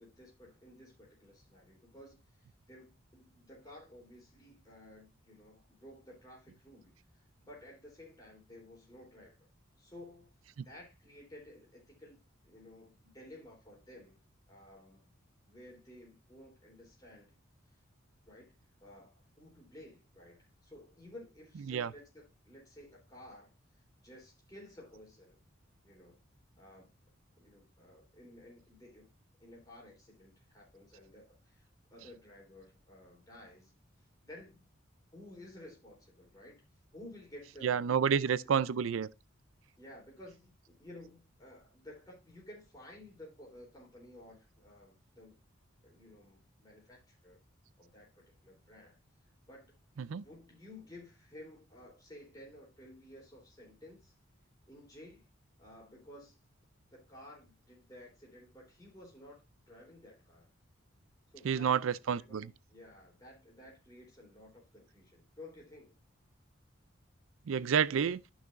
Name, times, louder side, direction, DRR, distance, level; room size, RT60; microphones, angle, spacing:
voice 1, 0.0-9.5 9.8-14.2 14.5-15.1 15.4-17.4 17.7-17.8 18.3-18.5 18.8-25.4 25.8-26.2 26.6-26.9 27.4-29.1 29.4-33.7 34.0-34.6 35.1-36.6 36.9-37.8 38.1-38.7 39.8-45.3 45.8-47.4 47.8-49.0 49.5-49.7 50.1-54.1 54.7-55.3 55.6-56.4 56.9-59.4 59.7-60.5 61.3-61.8 62.1-66.0, left 1 dB, 20° left, 3.5 m, -54 dB
voice 2, 37.6-39.1 50.0-50.2 61.4-62.5 67.5-68.2, right 7 dB, 80° right, 0.4 m, -29 dB
12.0 x 5.7 x 2.6 m
head